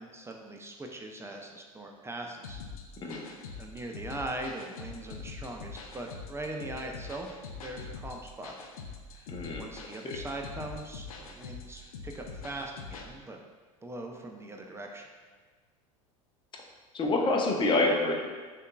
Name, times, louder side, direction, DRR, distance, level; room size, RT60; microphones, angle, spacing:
voice 1, 0.0-2.6 3.1-8.5 9.5-13.4 13.8-15.1, right 2 dB, 15° right, 2 dB, 0.4 m, -41 dB
sound 1, 2.4-13.1, left 4 dB, 85° left, 0.5 m, -44 dB
voice 2, 9.3-9.7 10.0-10.2 16.9-18.2, left 2 dB, 25° left, 0 dB, 0.7 m, -27 dB
6.4 x 2.5 x 2.2 m, 1.4 s
hypercardioid pair, 80°, 18 cm